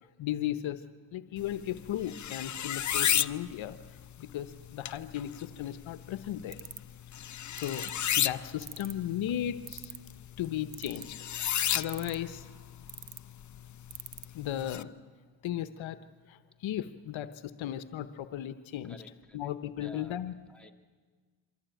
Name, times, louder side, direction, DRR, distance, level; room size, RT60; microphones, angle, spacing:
voice 1, 0.2-0.8 1.1-3.8 4.2-6.6 7.6-9.9 10.4-11.1 11.4-12.5 14.3-14.9 15.4-16.0 16.3-19.0 19.3-20.3, left 11 dB, 80° left, 12 dB, 0.9 m, -36 dB
sound 1, 1.4-14.8, left 10 dB, 40° left, 0.6 m, -35 dB
sound 2, 6.5-6.9 7.6-7.9 8.6-9.0 9.7-10.1 10.7-11.2 11.8-12.3 12.9-13.2 13.9-14.2, right 9 dB, 40° right, 0.7 m, -41 dB
voice 2, 18.9-19.5 19.8-20.2 20.5-20.7, left 1 dB, ahead, 2 dB, 2.0 m, -52 dB
24.0 x 14.5 x 9.0 m, 1.5 s
cardioid pair, 65°, 46 cm